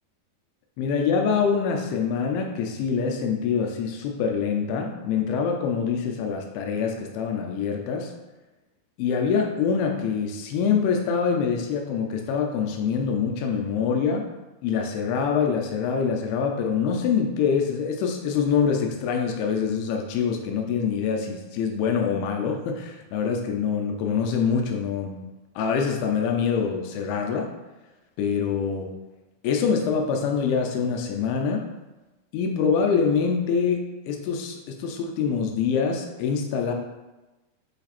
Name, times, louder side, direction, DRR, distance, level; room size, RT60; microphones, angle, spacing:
voice 1, 0.8-8.1 9.0-14.3 14.6-25.3 25.6-27.5 28.2-28.9 29.4-31.7 32.3-36.7, left 6 dB, 85° left, 3 dB, 2.7 m, -25 dB
8.3 x 3.3 x 4.2 m, 1.1 s
omnidirectional pair, 4.5 m